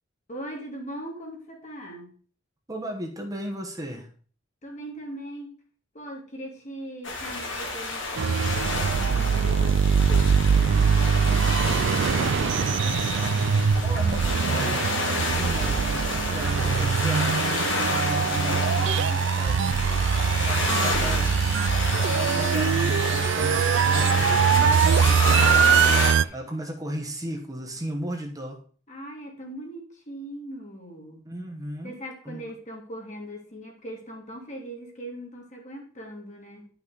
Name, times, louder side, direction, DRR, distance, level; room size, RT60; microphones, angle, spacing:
voice 1, 0.3-2.2 4.6-5.5 5.9-13.1 20.5-21.5 24.5-24.7 25.1-25.2 28.9-31.2 31.8-36.7, equal, 40° left, 1 dB, 2.4 m, -40 dB
voice 2, 2.7-4.1 13.8-17.4 17.7-19.9 20.4-21.4 21.9-25.6 26.3-28.6 31.2-31.9 32.2-32.5, equal, 20° right, 2 dB, 1.2 m, -35 dB
sound 1, 7.0-26.1, left 2 dB, 70° left, 2.2 m, -29 dB
sound 2, 8.2-26.2, right 6 dB, 65° right, 0.3 m, -22 dB
10.0 x 5.8 x 4.0 m, 0.43 s
head